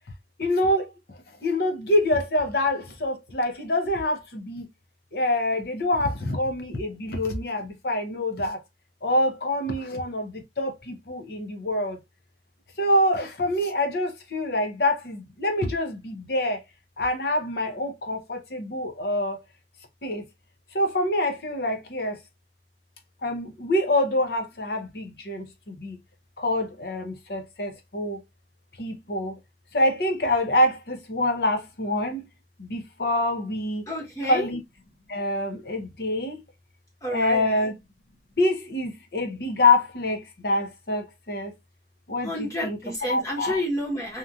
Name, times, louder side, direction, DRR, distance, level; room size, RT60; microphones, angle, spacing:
voice 1, 0.4-4.7 5.1-8.6 9.0-12.0 12.8-16.6 17.0-19.4 20.0-20.2 20.7-22.2 23.2-26.0 26.4-28.2 28.8-29.4 29.7-32.3 32.6-33.8 34.3-34.6 35.1-36.4 37.1-37.7 38.4-41.5 42.1-42.8 43.1-43.6, left 1 dB, 60° left, 0.8 m, -26 dB
voice 2, 33.9-34.5 37.0-37.4 42.2-44.2, left 1 dB, 20° left, 1.1 m, -29 dB
2.9 x 2.6 x 2.3 m
head